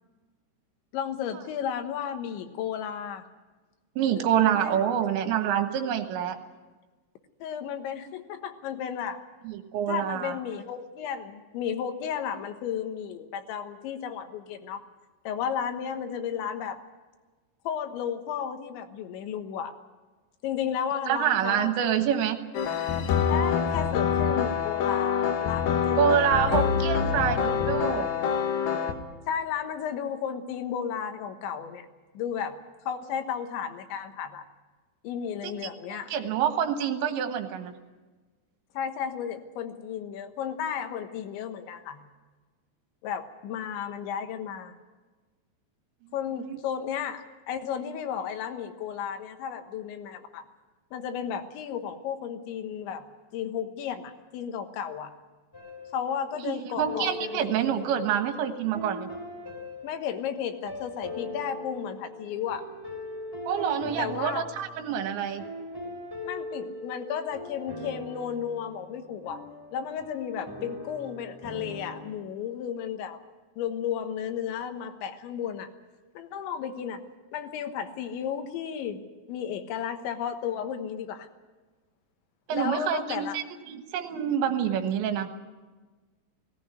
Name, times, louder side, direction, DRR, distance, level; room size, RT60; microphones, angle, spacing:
voice 1, 0.9-3.3 4.0-4.2 4.6-4.8 7.4-9.2 9.9-14.8 15.3-16.8 17.7-19.7 20.4-21.7 23.3-26.7 29.3-31.9 32.2-32.6 32.9-34.4 35.0-36.1 38.8-42.0 43.0-44.8 46.1-50.5 50.9-53.0 53.3-55.1 55.9-57.9 59.8-62.6 64.0-64.5 66.2-69.4 69.7-73.2 73.6-75.7 76.2-77.0 77.3-79.0 79.3-81.3 82.5-83.4, left 8 dB, 80° left, 7 dB, 3.6 m, -33 dB
voice 2, 4.0-6.4 9.5-10.4 21.1-22.4 26.0-28.1 35.4-35.5 35.9-37.7 46.4-46.6 56.4-59.1 63.5-65.4 82.5-85.3, right 9 dB, 80° right, 7 dB, 3.6 m, -27 dB
sound 1, 22.5-28.9, left 7 dB, 65° left, 2.7 m, -26 dB
sound 2, 55.5-56.4 56.8-72.1, left 1 dB, 5° left, 3.4 m, -41 dB
18.5 x 17.0 x 9.6 m, 1.3 s
omnidirectional pair, 5.3 m